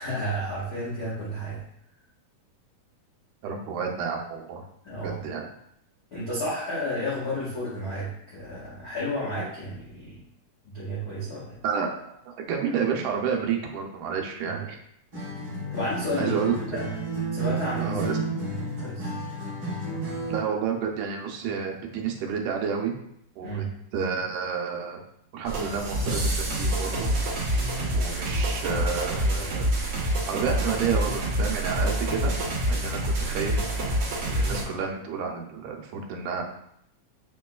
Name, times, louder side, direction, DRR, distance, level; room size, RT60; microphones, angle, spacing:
voice 1, 0.0-1.6 4.8-5.3 6.1-10.2 10.6-11.6 14.4-14.6 15.7-16.3 16.7-16.8 17.3-18.0 18.8-19.1 23.4-23.7, equal, 65° left, -9 dB, 0.9 m, -31 dB
voice 2, 3.4-4.6 5.0-5.5 11.6-12.0 12.3-14.8 16.2-16.8 17.8-18.2 20.3-22.9 23.4-23.7 23.9-25.0 25.3-27.1 27.9-29.7 30.3-32.4 32.7-33.6 34.3-36.4, right 6 dB, 85° right, 1 dB, 2.2 m, -30 dB
Acoustic guitar, 15.1-20.5, right 3 dB, 40° right, 1.8 m, -32 dB
sound 1, 25.4-34.6, right 1 dB, 55° right, 1.5 m, -27 dB
6.6 x 3.0 x 2.3 m, 0.73 s
omnidirectional pair, 3.6 m